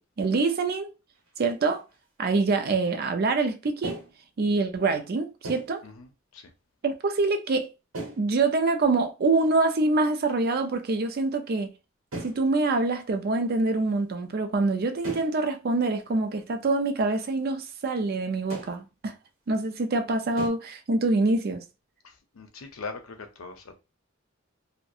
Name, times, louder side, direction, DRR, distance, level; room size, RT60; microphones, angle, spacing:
voice 1, 0.2-0.9 1.4-1.8 2.2-4.0 4.4-5.8 6.8-7.7 8.2-11.7 12.2-19.1 19.5-21.6, right 3 dB, 50° right, 0.4 m, -25 dB
sound 1, 1.1-1.3 1.7-2.0 3.8-4.3 5.4-5.8 7.9-8.3 9.4-9.5 9.9-10.3 10.6-10.8 11.1-11.5 12.1-12.4 15.0-15.4 15.8-15.9 16.5-16.6 18.5-18.8 20.4-20.5, right 2 dB, 80° right, 0.9 m, -38 dB
voice 2, 5.8-6.5 22.0-23.7, left 4 dB, 85° left, 0.6 m, -41 dB
2.7 x 2.1 x 2.3 m
head